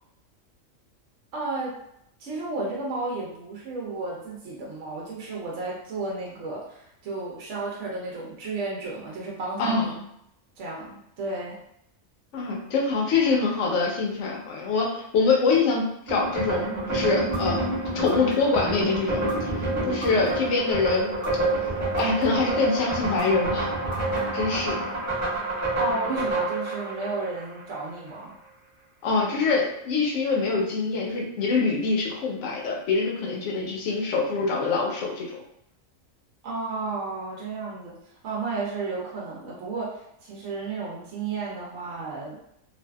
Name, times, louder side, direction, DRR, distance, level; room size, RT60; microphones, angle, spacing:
voice 1, 1.3-1.8 2.2-9.9 10.6-11.6 25.8-28.4 36.4-38.0 38.2-42.4, right 3 dB, 70° right, -4 dB, 0.9 m, -32 dB
voice 2, 9.6-9.9 12.3-17.6 17.9-21.1 22.0-23.7 24.3-24.8 29.0-35.4, left 4 dB, 65° left, -2 dB, 0.9 m, -25 dB
sound 1, 16.1-27.8, right 2 dB, 15° right, 1.0 m, -28 dB
sound 2, 17.3-17.4 18.1-18.6 19.3-19.4 20.0-20.5 21.2-21.3 22.0-22.5 23.2-23.3 23.9-24.4, equal, 40° left, 0.7 m, -36 dB
2.6 x 2.4 x 2.2 m, 0.75 s
omnidirectional pair, 1.4 m